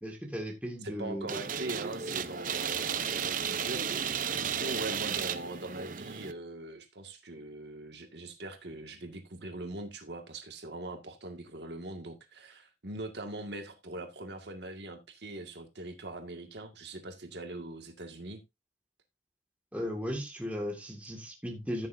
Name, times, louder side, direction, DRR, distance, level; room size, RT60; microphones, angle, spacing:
voice 1, 0.0-1.4 19.7-21.9, equal, 10° right, 1 dB, 1.9 m, -36 dB
voice 2, 0.8-4.0 4.3-18.4, right 2 dB, 70° right, 5 dB, 2.0 m, -41 dB
sound 1, 1.3-6.3, right 7 dB, 45° right, 0.7 m, -34 dB
14.5 x 6.9 x 2.7 m, 0.22 s
head